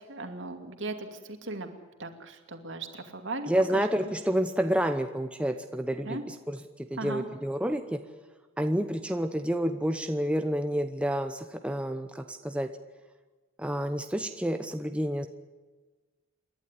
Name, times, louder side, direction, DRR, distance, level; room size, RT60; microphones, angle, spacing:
voice 1, 0.1-1.7 2.0-3.5 6.0-6.2 7.0-7.3, right 2 dB, 60° right, 6 dB, 2.5 m, -37 dB
voice 2, 3.5-8.0 8.6-12.7 13.6-15.3, equal, 5° right, 6 dB, 0.9 m, -29 dB
28.0 x 12.0 x 9.8 m, 1.3 s
head